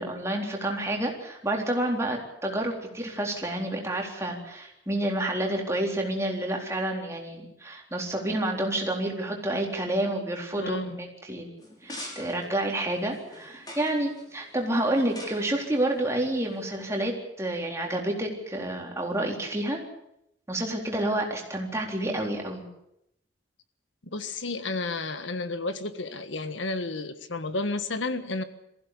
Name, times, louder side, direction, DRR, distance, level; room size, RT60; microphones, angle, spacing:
voice 1, 0.0-11.5 11.8-19.8 20.5-22.7, right 1 dB, 15° right, 0 dB, 3.9 m, -29 dB
voice 2, 10.6-11.0 24.1-28.4, left 3 dB, 90° left, 11 dB, 1.6 m, -31 dB
sound 1, 11.6-17.1, left 1 dB, 20° left, 5.5 m, -46 dB
22.5 x 15.5 x 9.8 m, 0.79 s
head